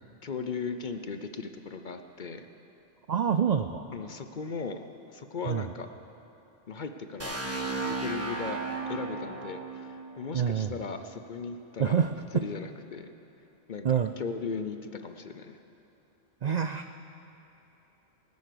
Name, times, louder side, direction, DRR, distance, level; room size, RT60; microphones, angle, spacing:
voice 1, 0.2-2.5 3.9-5.9 6.7-7.4 7.9-8.6 8.9-12.1 12.3-13.1 13.7-15.6, left 5 dB, 50° left, 8 dB, 0.7 m, -37 dB
voice 2, 3.1-3.8 5.5-5.6 10.3-10.7 11.8-12.2 13.8-14.1 16.4-17.1, right 7 dB, 65° right, 8 dB, 0.4 m, -26 dB
sound 1, 7.2-11.0, right 3 dB, 10° right, 1.3 m, -35 dB
20.0 x 9.6 x 6.8 m, 3.0 s
omnidirectional pair, 1.2 m